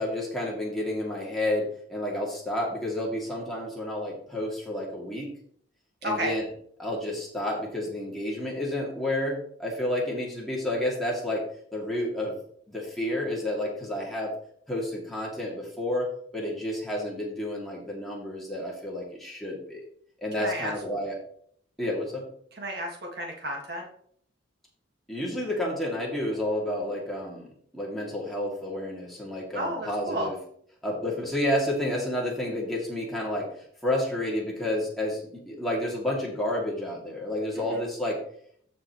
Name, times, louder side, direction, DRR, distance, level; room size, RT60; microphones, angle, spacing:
voice 1, 0.0-5.3 6.0-6.4 6.8-11.4 11.7-12.4 12.7-14.3 14.7-16.1 16.3-19.8 20.2-21.2 21.8-22.3 25.1-30.4 30.8-38.2, left 1 dB, ahead, -5 dB, 2.4 m, -30 dB
voice 2, 6.0-6.3 20.4-20.7 22.5-23.9 29.5-30.3 37.6-37.8, right 1 dB, 55° right, -1 dB, 1.8 m, -32 dB
14.5 x 5.2 x 3.1 m, 0.63 s
head